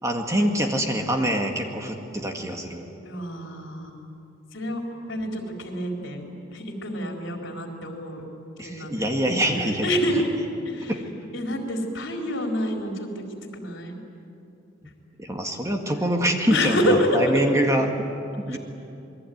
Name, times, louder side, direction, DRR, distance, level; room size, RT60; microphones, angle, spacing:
voice 1, 0.0-2.9 8.6-9.9 10.9-11.0 15.2-16.8 17.1-17.9 18.5-18.6, right 1 dB, 15° right, 3 dB, 1.9 m, -24 dB
voice 2, 3.0-4.0 4.5-8.2 8.6-9.1 9.6-10.3 10.6-11.0 11.3-13.2 13.5-14.0 16.5-17.2 17.5-17.6 18.5-18.6, equal, 65° left, 1 dB, 4.2 m, -28 dB
28.0 x 21.5 x 9.4 m, 2.6 s
head